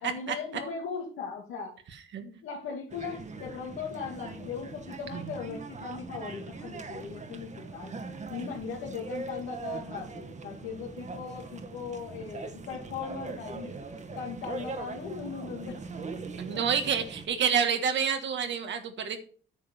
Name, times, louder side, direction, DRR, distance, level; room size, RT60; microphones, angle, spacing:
voice 1, 0.0-1.8 2.2-7.9 8.3-13.7 14.1-15.8 16.5-16.6, left 6 dB, 90° left, -3 dB, 2.3 m, -38 dB
sound 1, 2.9-17.3, right 4 dB, 35° right, 1.5 m, -41 dB
voice 2, 16.4-19.2, right 7 dB, 70° right, 6 dB, 1.6 m, -28 dB
9.5 x 5.3 x 7.0 m, 0.43 s
cardioid pair, 90°, 20 cm